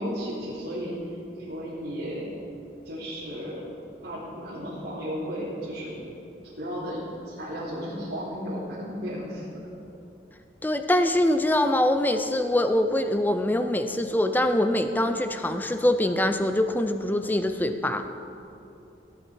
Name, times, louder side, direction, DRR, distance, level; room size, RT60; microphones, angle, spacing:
voice 1, 0.0-2.3 2.8-3.7 4.0-5.9 6.6-9.4, equal, 75° right, -12 dB, 3.0 m, -34 dB
voice 2, 10.6-18.1, left 1 dB, 10° left, 8 dB, 0.5 m, -24 dB
16.5 x 8.4 x 4.3 m, 2.8 s
head